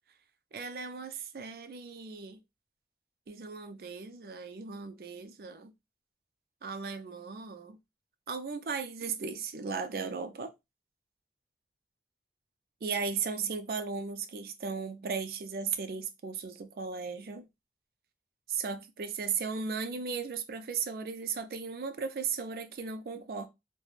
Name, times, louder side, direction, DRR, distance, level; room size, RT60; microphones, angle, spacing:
voice 1, 0.5-2.4 3.3-5.7 6.6-7.8 8.3-10.5 12.8-17.5 18.5-23.5, right 5 dB, 55° right, 0.4 m, -36 dB
2.4 x 2.1 x 3.1 m
head